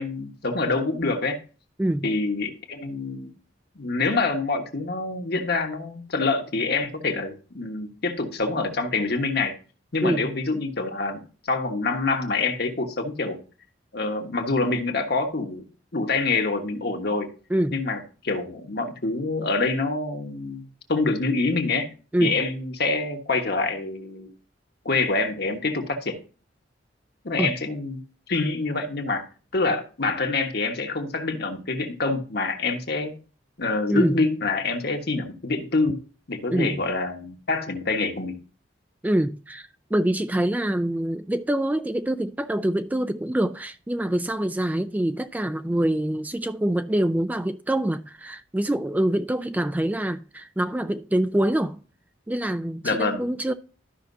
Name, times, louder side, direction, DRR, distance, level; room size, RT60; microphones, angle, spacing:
voice 1, 0.0-1.4 2.0-3.3 3.7-9.5 9.9-13.4 13.9-15.6 15.9-17.3 17.7-21.9 22.2-24.3 24.8-26.2 27.2-28.0 28.3-29.3 29.5-33.1 33.6-36.0 36.3-38.4 52.8-53.2, left 3 dB, 60° left, 1.4 m, -26 dB
voice 2, 1.8-2.1 10.0-10.3 17.5-17.8 22.1-22.4 27.4-27.5 33.9-34.2 36.5-36.8 39.0-51.8 52.3-53.5, right 1 dB, 10° right, 0.3 m, -25 dB
13.0 x 5.8 x 2.6 m
head